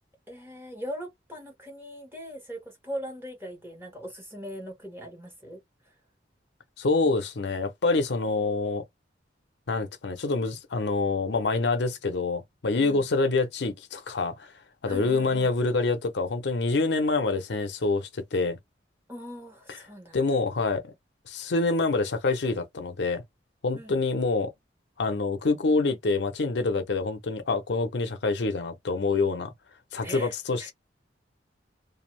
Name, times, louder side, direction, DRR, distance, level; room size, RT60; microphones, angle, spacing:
voice 1, 0.3-5.6 5.8-5.9 8.3-8.5 12.8-13.1 14.9-15.5 19.1-20.2 23.7-24.0 30.0-30.3 30.6-30.7, equal, 15° right, 1.2 m, -40 dB
voice 2, 6.8-8.8 9.7-14.5 14.8-18.6 19.7-19.8 20.1-20.8 21.3-23.2 23.6-24.5 25.0-29.5 29.9-30.7, left 3 dB, 70° left, 0.6 m, -26 dB
2.6 x 2.3 x 3.1 m
head